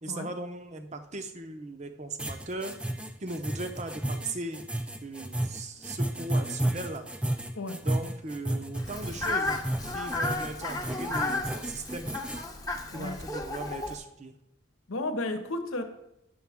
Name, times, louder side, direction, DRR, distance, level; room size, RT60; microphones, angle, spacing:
voice 1, 0.0-2.8 3.2-4.6 5.0-7.0 7.8-9.6 9.9-12.1 12.9-14.3, right 2 dB, 30° right, 7 dB, 0.7 m, -38 dB
sound 1, 2.2-12.4, right 1 dB, 5° right, 0.3 m, -32 dB
voice 2, 7.5-7.9 12.9-13.2 14.9-15.8, left 2 dB, 75° left, 7 dB, 1.0 m, -33 dB
Fowl, 8.7-13.9, left 2 dB, 15° left, 0.8 m, -33 dB
10.5 x 6.9 x 3.5 m, 0.84 s
head